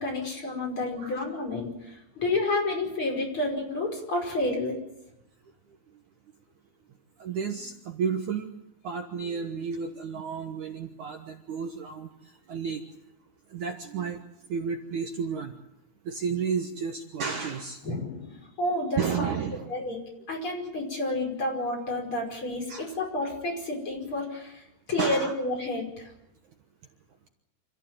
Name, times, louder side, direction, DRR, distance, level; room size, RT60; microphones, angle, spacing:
voice 1, 0.0-4.8 17.8-19.3 19.7-20.0 20.3-26.1, left 2 dB, 30° left, 0 dB, 5.9 m, -30 dB
voice 2, 7.2-8.5 8.8-12.1 12.5-12.8 13.5-14.2 14.5-15.5 16.1-17.8 19.0-19.9 22.7-23.0 25.0-25.3, right 6 dB, 60° right, 4 dB, 2.4 m, -32 dB
27.5 x 15.0 x 9.0 m, 0.87 s
omnidirectional pair, 4.5 m